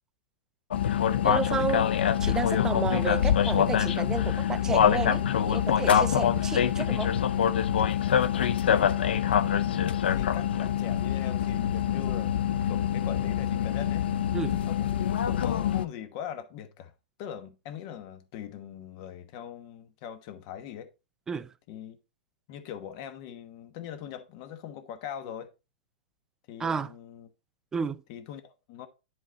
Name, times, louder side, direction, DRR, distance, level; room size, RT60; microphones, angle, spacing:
sound 1, 0.7-15.9, left 9 dB, 80° left, 0.6 m, -25 dB
voice 1, 1.2-1.9 2.2-7.1 14.3-14.6 21.3-21.5 26.6-26.9 27.7-28.0, right 5 dB, 10° right, 0.3 m, -32 dB
voice 2, 8.7-9.1 9.7-14.1 14.6-16.9 17.2-20.9 21.7-22.0 22.5-25.5 26.5-27.3 28.1-28.9, left 9 dB, 40° left, 1.1 m, -41 dB
10.5 x 3.9 x 4.0 m
hypercardioid pair, 150°, 5 cm